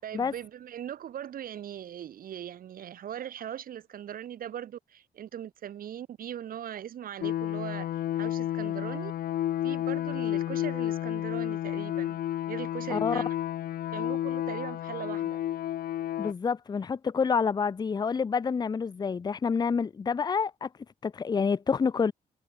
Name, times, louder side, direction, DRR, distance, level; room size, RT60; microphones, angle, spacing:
voice 1, 0.0-9.1 9.6-12.2 12.5-13.4 13.9-15.4, right 10 dB, 75° right, 6.0 m, -40 dB
sound 1, 7.2-16.3, left 12 dB, 85° left, 1.5 m, -31 dB
voice 2, 12.9-13.2 16.2-20.7 21.0-22.1, left 5 dB, 30° left, 0.5 m, -28 dB
cardioid pair, 105°, 15 cm